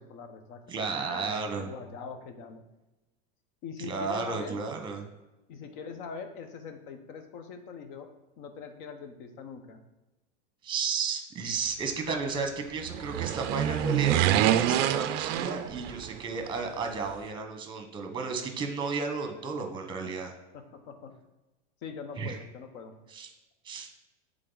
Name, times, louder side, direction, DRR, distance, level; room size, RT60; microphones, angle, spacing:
voice 1, 0.0-0.6 1.1-2.6 3.6-4.6 5.5-8.1 8.4-9.8 19.6-19.7 20.5-21.1 21.8-23.0, left 5 dB, 55° left, 7 dB, 1.0 m, -42 dB
voice 2, 0.7-1.7 3.8-5.1 10.6-20.3 22.2-22.4 23.1-23.3 23.6-23.9, right 4 dB, 15° right, 5 dB, 1.1 m, -33 dB
sound 1, 12.8-16.2 16.5-16.6, right 11 dB, 35° right, 0.4 m, -26 dB
7.6 x 3.7 x 3.9 m, 1.1 s
supercardioid pair, 135°, 29 cm